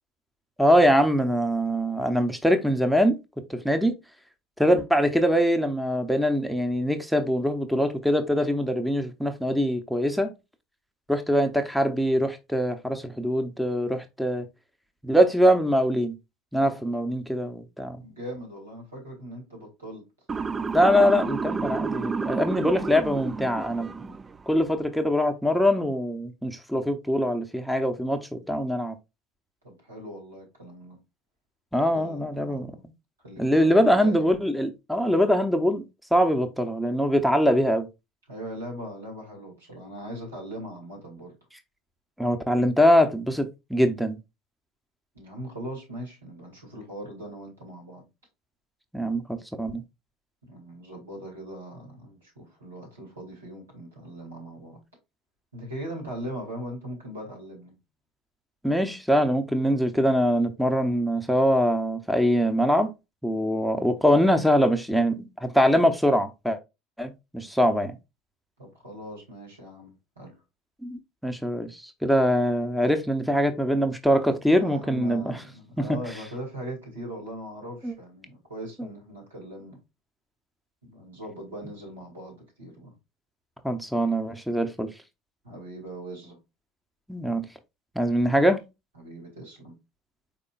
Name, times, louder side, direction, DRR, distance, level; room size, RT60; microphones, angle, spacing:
voice 1, 0.6-3.2 3.5-4.0 4.6-10.3 11.1-14.4 15.0-16.2 16.5-18.0 20.7-24.1 24.5-28.9 31.7-32.7 33.4-35.8 36.1-37.9 42.2-44.2 48.9-49.8 58.6-62.9 63.2-66.6 67.0-67.9 70.8-75.4 75.8-75.9 77.8-77.9 83.6-84.9 87.1-87.5 88.0-88.7, equal, ahead, 0.7 m, -23 dB
voice 2, 18.0-20.1 29.6-31.0 31.9-32.8 33.2-34.2 38.3-41.3 45.1-48.0 50.5-54.8 55.5-57.7 68.6-70.4 74.6-79.8 80.8-83.0 85.4-86.4 89.0-89.8, right 1 dB, 85° right, 2.4 m, -40 dB
Motor vehicle (road) / Siren, 20.3-24.4, right 5 dB, 25° right, 0.3 m, -30 dB
5.2 x 4.2 x 2.4 m
figure-of-eight pair, 70°, 0 cm